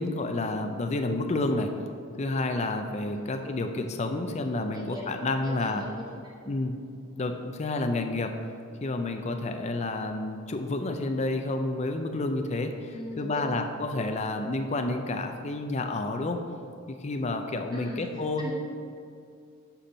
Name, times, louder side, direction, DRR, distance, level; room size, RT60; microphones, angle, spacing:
voice 1, 0.0-1.7 2.2-5.9 6.5-6.8 7.2-8.4 8.8-16.4 16.9-18.5, left 2 dB, 30° left, 5 dB, 0.5 m, -30 dB
voice 2, 3.1-3.5 4.7-5.0 5.4-6.0 6.4-6.5 12.9-13.6 17.7-18.0 18.4-18.5, equal, 20° right, -4 dB, 1.4 m, -40 dB
8.1 x 4.3 x 5.5 m, 2.4 s
head